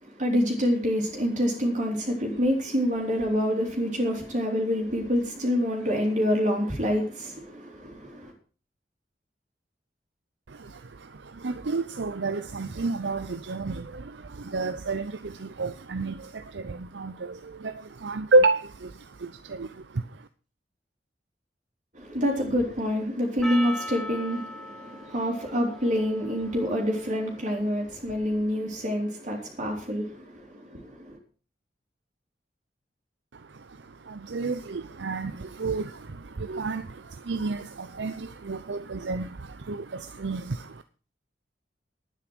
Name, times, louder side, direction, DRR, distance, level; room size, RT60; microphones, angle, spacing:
voice 1, 0.0-8.3 21.9-31.2, equal, 45° right, 3.2 m, -27 dB
voice 2, 10.5-20.3 33.3-40.8, right 3 dB, 85° right, 0.7 m, -30 dB
Percussion, 23.4-28.0, left 1 dB, ahead, 1.5 m, -40 dB
11.5 x 9.5 x 6.1 m
head